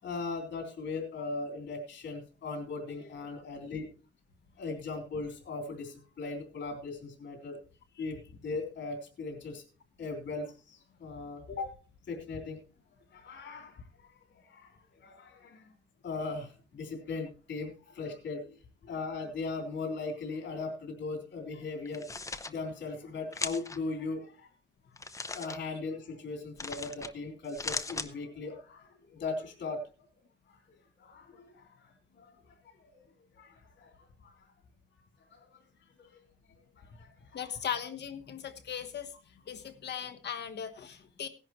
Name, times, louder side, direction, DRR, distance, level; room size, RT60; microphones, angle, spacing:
voice 1, 0.0-3.9 4.5-7.6 8.0-9.7 10.0-11.7 12.1-12.6 13.1-15.7 16.0-18.6 18.8-22.1 22.4-24.5 25.3-29.8 30.5-30.6 31.0-33.0 33.3-34.5 35.3-35.7 36.0-36.3 36.7-37.5, left 3 dB, 80° left, 3 dB, 3.4 m, -39 dB
sound 1, 21.9-22.5 23.3-23.8 25.0-25.6 26.6-27.1 27.4-28.1, left 3 dB, 15° left, 0.7 m, -37 dB
voice 2, 37.3-39.1 39.5-41.3, left 8 dB, 60° left, 8 dB, 1.2 m, -38 dB
17.5 x 11.0 x 3.0 m, 0.34 s
wide cardioid pair, 165°, 19 cm